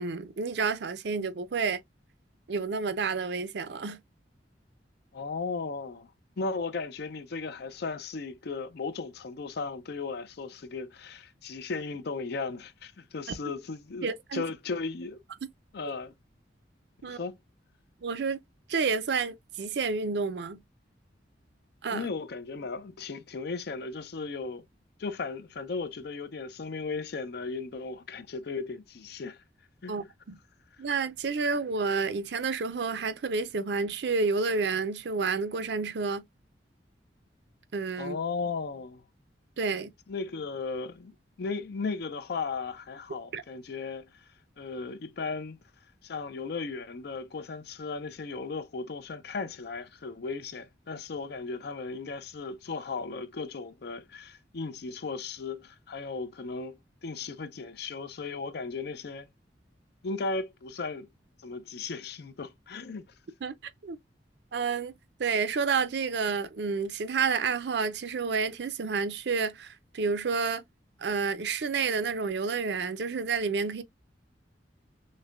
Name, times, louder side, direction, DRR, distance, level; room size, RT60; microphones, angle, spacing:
voice 1, 0.0-1.8 2.5-4.0 14.0-14.4 17.0-17.2 18.0-18.4 18.7-20.6 21.8-22.1 29.9-30.4 30.8-36.2 37.7-38.2 39.6-39.9 43.3-43.4 63.4-63.6 63.8-64.0 64.5-64.9 65.2-70.6 71.0-73.8, right 4 dB, 65° right, 0.5 m, -30 dB
voice 2, 5.1-6.1 6.4-15.2 15.7-16.1 17.0-17.4 21.9-24.6 25.0-29.4 29.8-30.1 38.0-39.0 40.1-41.1 41.4-44.2 44.6-45.6 46.0-59.3 60.0-61.1 61.4-63.0, left 4 dB, 60° left, 0.5 m, -36 dB
6.3 x 2.2 x 2.3 m
head